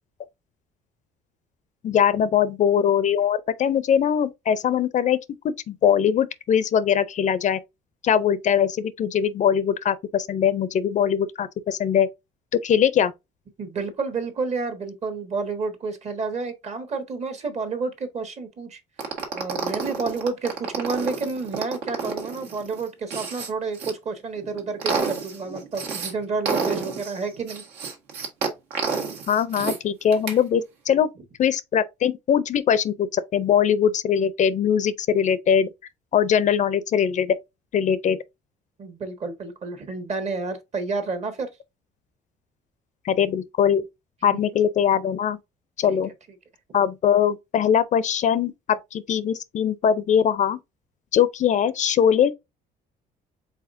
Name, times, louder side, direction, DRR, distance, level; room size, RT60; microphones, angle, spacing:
voice 1, 1.8-5.2 5.4-7.6 8.0-12.1 12.5-13.1 29.3-31.1 31.4-35.7 36.1-37.4 37.7-38.2 43.0-43.8 44.2-45.4 45.8-46.1 46.7-50.6 51.1-52.3, left 8 dB, 45° left, 0.5 m, -21 dB
voice 2, 13.6-18.8 19.3-27.6 38.8-41.5 45.9-46.0, right 4 dB, 40° right, 1.3 m, -30 dB
sound 1, 19.0-23.9 24.4-26.1 26.4-29.8 30.1-30.4, right 5 dB, 80° right, 1.7 m, -29 dB
4.9 x 4.0 x 2.6 m
cardioid pair, 110°, 17 cm